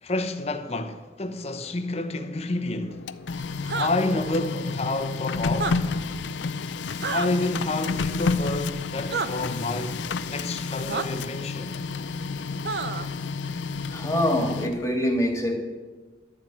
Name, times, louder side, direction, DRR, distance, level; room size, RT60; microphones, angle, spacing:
voice 1, 0.0-3.1 3.7-5.8 7.1-11.8, left 2 dB, 35° left, 0.9 m, -29 dB
Printer, 2.9-15.0, left 4 dB, 80° left, 0.5 m, -30 dB
sound 1, 3.6-3.9 5.5-5.7 7.0-7.3 9.1-9.3 10.9-11.1 12.6-13.1, right 5 dB, 65° right, 0.7 m, -28 dB
voice 2, 13.9-15.6, equal, 15° left, 1.8 m, -25 dB
11.5 x 7.2 x 9.1 m
head